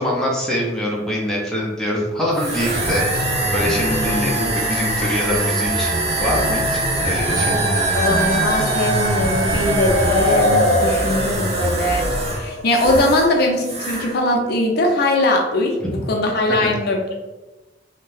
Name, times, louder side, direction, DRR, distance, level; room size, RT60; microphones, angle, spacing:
voice 1, 0.0-7.6 15.8-15.9, equal, 5° left, -5 dB, 0.5 m, -24 dB
sound 1, 2.3-13.3 13.6-14.1, right 1 dB, 35° right, 0.6 m, -22 dB
sound 2, 7.2-13.0, left 1 dB, 65° right, 1.2 m, -25 dB
voice 2, 7.9-17.1, left 1 dB, 60° left, 1 dB, 0.5 m, -20 dB
2.6 x 2.1 x 3.1 m, 1.1 s
head